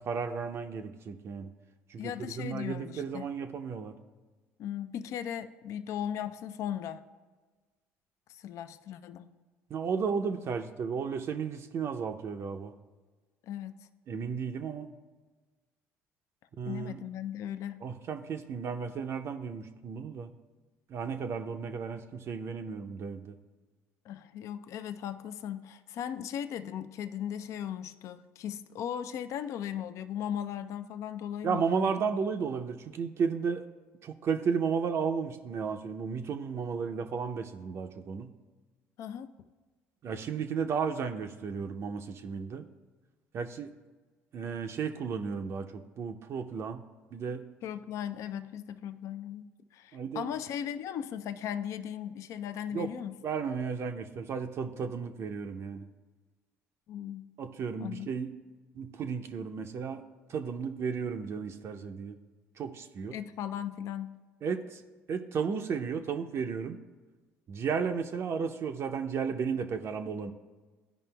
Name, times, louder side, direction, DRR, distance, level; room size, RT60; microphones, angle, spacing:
voice 1, 0.0-1.5 1.9-3.9 9.7-12.7 14.1-14.9 16.6-17.0 17.8-20.3 20.9-23.3 31.4-33.7 34.0-38.3 40.0-42.7 43.3-43.8 44.3-46.9 47.1-47.5 49.9-50.3 52.7-52.9 53.2-55.9 57.4-58.3 58.7-60.0 60.3-62.2 62.6-63.2 64.4-64.8 65.1-66.8 67.5-70.3, right 6 dB, 50° right, 5 dB, 0.5 m, -34 dB
voice 2, 2.0-3.3 4.6-7.0 8.3-9.3 13.4-13.9 16.6-17.8 24.1-32.0 39.0-39.3 47.6-53.2 56.9-57.3 57.8-58.1 63.1-64.2, left 9 dB, 60° left, 12 dB, 0.4 m, -37 dB
13.0 x 5.1 x 2.2 m, 1.3 s
supercardioid pair, 70°, 6 cm